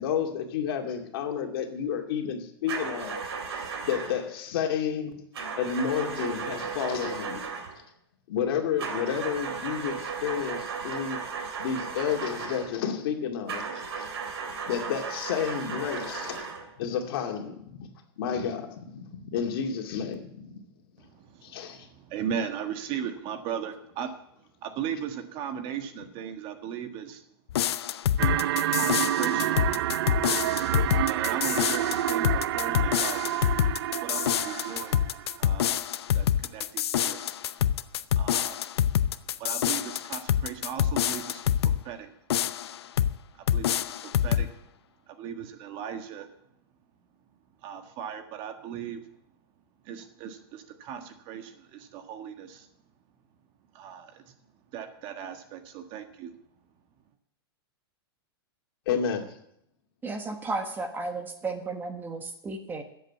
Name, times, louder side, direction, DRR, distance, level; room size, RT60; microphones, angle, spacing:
voice 1, 0.0-3.2 3.5-5.3 5.6-7.5 8.3-11.2 11.6-14.1 14.7-16.5 16.8-17.9 18.2-20.5 21.4-21.9 58.9-59.2, left 7 dB, 65° left, 3 dB, 2.3 m, -31 dB
sound 1, 2.7-4.3 5.3-7.8 8.8-12.8 13.5-16.7, right 5 dB, 85° right, 3.0 m, -35 dB
voice 2, 21.1-24.1 24.6-27.2 28.7-29.6 31.0-33.2 34.0-35.0 35.4-35.9 36.1-36.3 36.5-37.3 38.2-38.6 39.4-41.4 41.8-42.1 43.3-44.5 45.1-46.3 47.6-49.0 49.8-52.7 53.7-54.2 54.7-56.3, right 8 dB, 40° right, 6 dB, 1.6 m, -37 dB
sound 2, 27.5-41.8 42.3-43.2 43.5-44.5, left 10 dB, 85° left, 0.7 m, -26 dB
sound 3, 28.2-35.4, right 13 dB, 70° right, 0.5 m, -28 dB
voice 3, 60.0-62.8, right 3 dB, 15° right, 6 dB, 1.4 m, -33 dB
13.0 x 7.9 x 8.3 m, 0.76 s
supercardioid pair, 140°, 13 cm